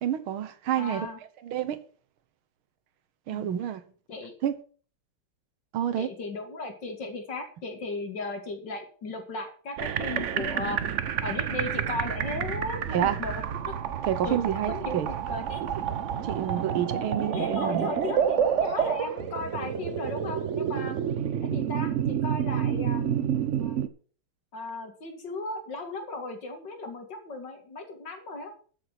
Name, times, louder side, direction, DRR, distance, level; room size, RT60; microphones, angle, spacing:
voice 1, 0.0-1.1 1.4-1.8 3.3-3.8 4.4-4.5 5.7-6.1 12.9-13.2 14.0-15.1 15.6-15.7 16.2-17.9, right 10 dB, 80° right, 1.8 m, -28 dB
voice 2, 0.8-1.2 3.3-3.6 4.1-4.3 6.0-10.8 11.2-13.3 14.2-14.4 14.7-15.6 17.3-21.0 21.5-23.8 24.5-28.5, left 3 dB, 55° left, 2.8 m, -36 dB
sound 1, 9.8-23.9, right 8 dB, 65° right, 0.7 m, -29 dB
13.5 x 6.8 x 6.1 m
omnidirectional pair, 2.3 m